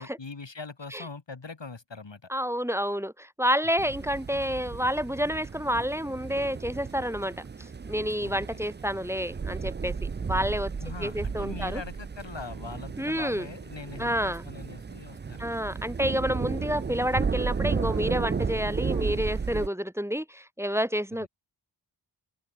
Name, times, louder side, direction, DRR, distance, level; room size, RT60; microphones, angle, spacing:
voice 1, 0.0-2.3 8.2-8.6 10.8-15.5 16.5-16.8 21.2-21.3, left 4 dB, 60° left, 2.5 m, -42 dB
voice 2, 2.3-10.0 10.3-10.7 11.0-11.8 13.0-13.5 14.0-14.5 15.4-21.3, equal, 5° right, 1.1 m, -29 dB
sound 1, 3.8-19.7, right 5 dB, 25° right, 0.3 m, -34 dB
open air
wide cardioid pair, 50°, 50 cm